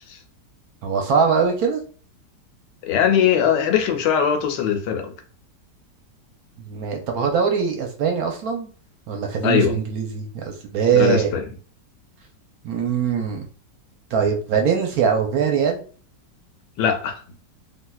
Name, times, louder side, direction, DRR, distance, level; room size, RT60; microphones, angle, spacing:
voice 1, 0.8-1.8 6.6-8.7 9.1-11.3 12.6-13.4 14.1-15.8, right 6 dB, 70° right, 3 dB, 0.9 m, -22 dB
voice 2, 2.8-5.1 9.4-9.8 10.9-11.4 16.8-17.2, left 8 dB, 85° left, 5 dB, 1.3 m, -20 dB
3.4 x 2.6 x 2.3 m, 0.39 s
omnidirectional pair, 2.0 m